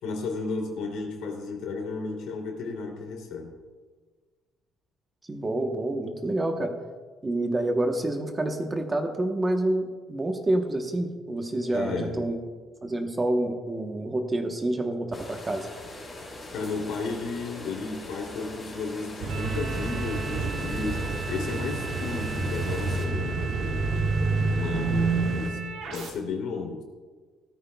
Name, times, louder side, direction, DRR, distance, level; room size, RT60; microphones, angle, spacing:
voice 1, 0.0-3.5 11.7-12.2 16.5-21.0 21.3-23.9 24.5-25.6 25.9-26.8, left 4 dB, 85° left, 1 dB, 2.8 m, -33 dB
voice 2, 5.3-6.7 7.2-12.4 12.8-15.7, right 1 dB, 15° right, 4 dB, 1.0 m, -28 dB
sound 1, 15.1-23.1, left 2 dB, 30° left, 4.2 m, -42 dB
sound 2, 19.2-25.5, right 3 dB, 50° right, 1.5 m, -28 dB
sound 3, 19.3-26.1, right 4 dB, 70° right, 2.3 m, -38 dB
17.0 x 13.0 x 2.3 m, 1.4 s
cardioid pair, 160°, 0 cm